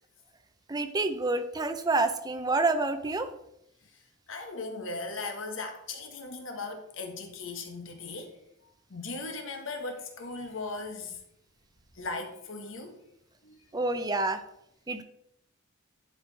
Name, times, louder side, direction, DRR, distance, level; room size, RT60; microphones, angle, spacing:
voice 1, 0.7-3.3 13.7-14.4 14.9-15.0, right 3 dB, 20° right, 9 dB, 0.5 m, -28 dB
voice 2, 4.3-8.3 8.9-11.2 12.0-12.9 13.4-13.6, left 3 dB, 65° left, 5 dB, 1.4 m, -38 dB
11.0 x 4.7 x 4.2 m, 0.78 s
head